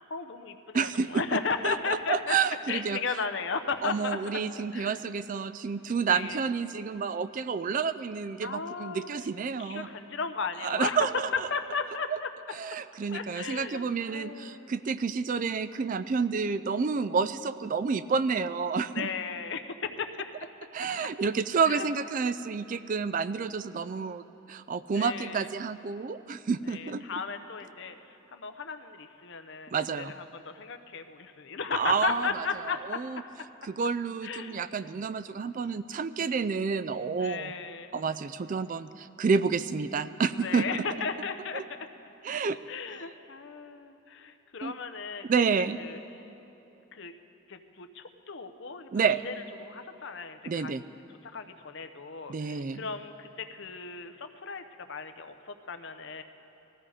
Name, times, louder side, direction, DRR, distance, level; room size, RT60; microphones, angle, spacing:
voice 1, 0.0-2.3 2.7-4.4 4.7-4.9 6.1-6.4 8.4-9.1 9.6-11.1 11.5-12.3 13.1-14.8 18.9-20.3 21.6-21.9 24.9-25.5 26.7-32.8 34.2-34.6 37.2-37.9 40.3-41.9 42.7-45.3 45.6-46.2 46.9-47.1 47.5-48.9 49.2-49.3 49.6-50.7 51.3-56.2, left 5 dB, 55° left, 8 dB, 0.7 m, -35 dB
voice 2, 0.7-1.2 1.6-3.0 3.8-9.9 10.6-11.5 12.1-12.2 12.5-19.1 20.7-24.2 24.5-27.0 29.7-30.1 31.7-32.4 32.9-33.2 33.6-37.5 37.9-40.7 41.5-41.6 42.2-42.6 44.6-44.8 45.3-45.8 48.9-49.2 50.5-50.8 52.3-52.9, right 5 dB, 40° right, 14 dB, 0.3 m, -29 dB
19.5 x 14.5 x 4.9 m, 3.0 s
head